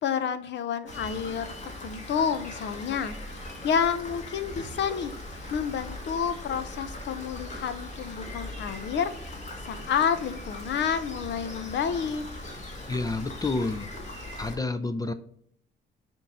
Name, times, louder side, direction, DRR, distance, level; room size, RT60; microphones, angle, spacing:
voice 1, 0.0-5.1 5.5-9.1 9.7-12.2, left 7 dB, 65° left, 12 dB, 0.7 m, -29 dB
Rain, 0.9-14.6, left 1 dB, 35° left, 1.9 m, -40 dB
voice 2, 12.9-13.9 14.4-15.1, left 3 dB, 20° left, 10 dB, 0.5 m, -29 dB
6.5 x 3.8 x 4.3 m, 0.69 s
cardioid pair, 90°, 20 cm